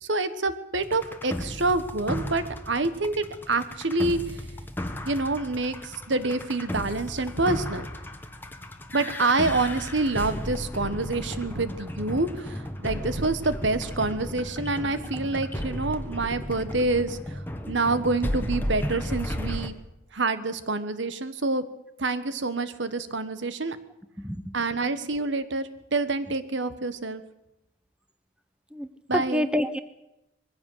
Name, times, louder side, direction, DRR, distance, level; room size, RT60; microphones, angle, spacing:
voice 1, 0.0-4.2 5.0-7.9 8.9-19.7 20.1-21.6 22.0-23.8 24.5-27.2 29.1-29.5, right 3 dB, 65° right, 12 dB, 1.3 m, -27 dB
sound 1, 0.8-19.7, left 1 dB, 10° left, 1.4 m, -34 dB
voice 2, 24.2-24.5 28.7-29.8, equal, 5° right, 11 dB, 0.7 m, -28 dB
21.5 x 15.0 x 7.9 m, 0.88 s
head